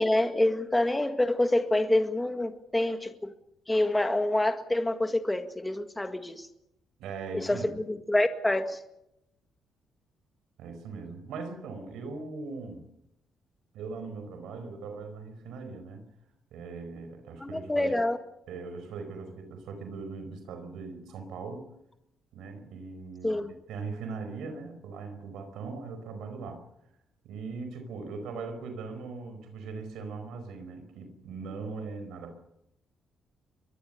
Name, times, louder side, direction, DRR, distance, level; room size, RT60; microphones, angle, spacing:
voice 1, 0.0-3.3 3.7-6.5 7.3-8.8 17.4-18.2 23.2-23.5, left 1 dB, 10° left, 1.8 m, -27 dB
voice 2, 7.0-7.7 10.6-12.9 13.7-16.0 16.5-17.9 18.5-21.7 22.3-23.4 23.7-26.6 27.2-32.4, right 4 dB, 85° right, 4.9 m, -40 dB
23.5 x 20.5 x 6.9 m
cardioid pair, 90°, 0 cm